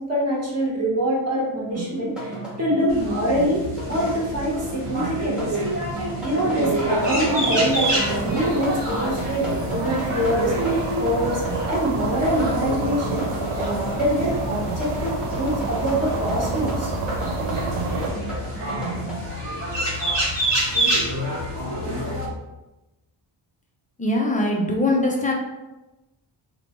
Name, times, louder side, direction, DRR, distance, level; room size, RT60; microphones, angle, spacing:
voice 1, 0.0-5.4 6.2-10.5 11.0-13.3 13.5-16.9, equal, 30° right, -4 dB, 1.0 m, -24 dB
sound 1, 1.7-19.1, right 2 dB, ahead, 0.8 m, -33 dB
sound 2, 2.9-22.3, right 1 dB, 60° right, 1.0 m, -28 dB
sound 3, 6.5-18.1, right 3 dB, 85° right, 0.6 m, -31 dB
voice 2, 24.0-25.3, left 1 dB, 20° left, 0 dB, 0.4 m, -21 dB
2.9 x 2.1 x 2.9 m, 1.0 s
cardioid pair, 95°, 49 cm